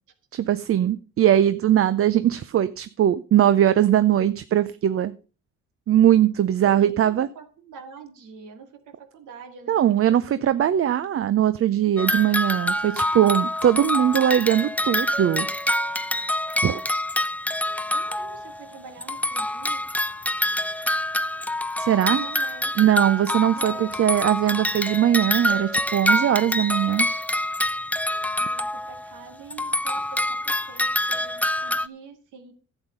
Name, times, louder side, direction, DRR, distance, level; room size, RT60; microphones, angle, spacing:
voice 1, 0.3-5.1 5.9-7.3 9.7-15.5 16.6-16.8 21.8-22.2 22.8-27.1, right 11 dB, 50° right, 14 dB, 0.6 m, -20 dB
voice 2, 6.6-9.8 10.3-10.5 17.9-19.8 21.9-22.7 23.5-23.9 28.4-32.5, right 5 dB, 80° right, 6 dB, 2.3 m, -45 dB
sound 1, 12.0-18.7 19.0-29.2 29.5-31.9, left 1 dB, 5° left, 0.4 m, -26 dB
11.5 x 8.1 x 5.3 m, 0.36 s
cardioid pair, 90°, 30 cm